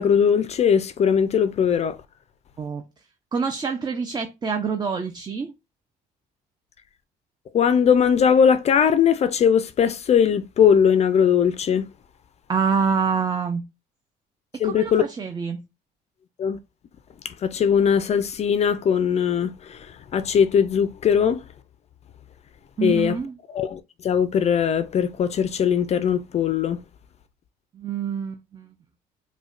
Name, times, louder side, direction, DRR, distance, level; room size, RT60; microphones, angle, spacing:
voice 1, 0.0-2.0 7.5-11.9 14.6-15.0 16.4-16.6 17.2-21.4 22.8-23.2 23.5-26.8, left 7 dB, 40° left, 0.4 m, -20 dB
voice 2, 3.3-5.5 12.5-13.6 14.6-15.6 22.8-23.3 27.7-28.7, right 5 dB, 25° right, 0.5 m, -26 dB
4.9 x 2.2 x 2.4 m
cardioid pair, 110°, 17 cm